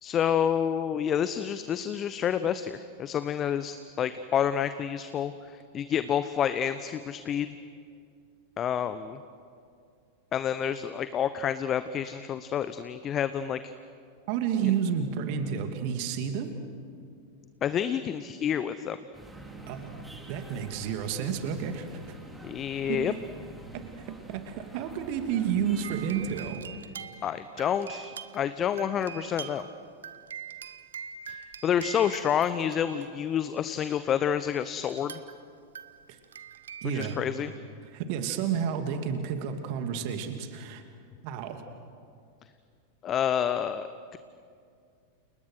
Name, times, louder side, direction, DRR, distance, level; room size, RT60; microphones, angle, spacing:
voice 1, 0.0-7.6 8.6-9.2 10.3-13.7 17.6-19.0 22.4-23.1 27.2-29.7 31.3-31.4 31.6-35.2 36.9-37.5 43.0-44.2, left 9 dB, 30° left, 12 dB, 0.9 m, -29 dB
voice 2, 14.3-16.6 19.7-19.9 20.3-21.9 22.9-23.2 23.7-26.6 36.1-36.2 36.8-37.2 37.9-40.8 41.2-41.6, right 8 dB, 45° right, 7 dB, 2.7 m, -31 dB
sound 1, 19.1-26.5, right 1 dB, 5° right, 3.7 m, -47 dB
sound 2, 25.8-33.6 34.9-35.4 35.7-37.2, right 8 dB, 65° right, 1.2 m, -44 dB
30.0 x 29.5 x 6.5 m, 2.4 s
figure-of-eight pair, 90°, 0 cm